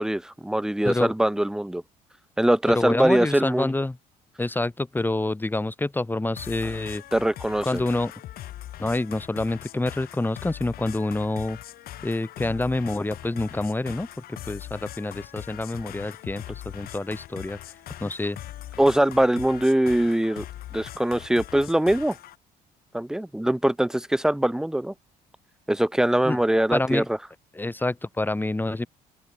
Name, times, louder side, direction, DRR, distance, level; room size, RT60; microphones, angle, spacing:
voice 1, 0.0-1.8 2.4-3.7 7.1-7.8 18.8-20.4 20.7-22.2 22.9-24.9 25.7-27.2, right 1 dB, 5° right, 0.5 m, -22 dB
voice 2, 2.7-4.0 4.4-7.0 7.6-8.1 8.8-11.6 12.0-17.6 18.0-18.4 26.2-26.4 26.7-27.1 27.5-28.9, left 2 dB, 10° left, 2.0 m, -27 dB
sound 1, 6.4-22.4, left 13 dB, 65° left, 2.4 m, -41 dB
supercardioid pair, 85°, 16 cm